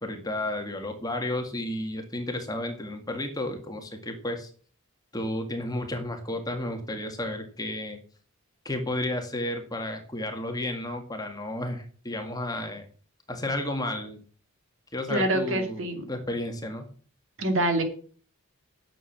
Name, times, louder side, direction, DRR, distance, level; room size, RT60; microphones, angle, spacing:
voice 1, 0.0-4.5 5.1-8.0 8.7-12.9 13.3-14.2 14.9-16.9, left 1 dB, 15° left, 4 dB, 1.7 m, -32 dB
voice 2, 15.1-16.0 17.4-17.8, right 1 dB, 60° right, 6 dB, 2.5 m, -25 dB
10.0 x 7.2 x 7.2 m, 0.43 s
head